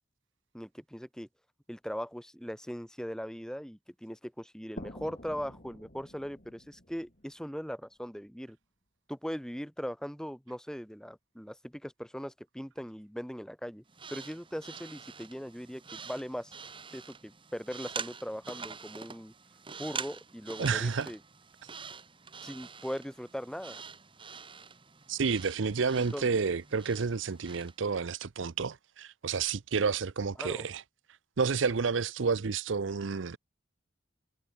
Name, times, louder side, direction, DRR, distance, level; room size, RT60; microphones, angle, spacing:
voice 1, 0.5-1.3 1.7-8.6 9.1-13.8 14.1-16.5 16.9-19.3 19.8-21.2 22.4-23.8 26.0-26.3 30.4-30.7, equal, 5° left, 6.0 m, -40 dB
sound 1, 4.8-8.3, left 1 dB, 45° left, 6.9 m, -49 dB
sound 2, 13.9-27.8, right 6 dB, 25° right, 2.1 m, -45 dB
voice 2, 20.6-21.1 25.1-30.8 31.4-33.4, right 5 dB, 75° right, 0.6 m, -30 dB
head